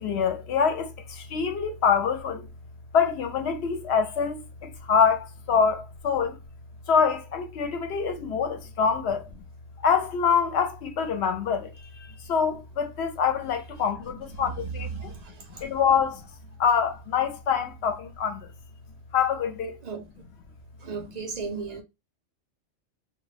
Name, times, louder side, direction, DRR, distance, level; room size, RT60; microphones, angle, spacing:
voice 1, 0.0-2.5 2.9-6.4 6.9-9.3 9.8-15.1 15.6-16.3 16.6-18.5 19.1-19.8, left 6 dB, 65° left, 0.7 m, -25 dB
voice 2, 15.0-15.6 19.8-20.0 20.8-21.8, right 5 dB, 80° right, 0.3 m, -36 dB
2.2 x 2.1 x 3.1 m
omnidirectional pair, 1.3 m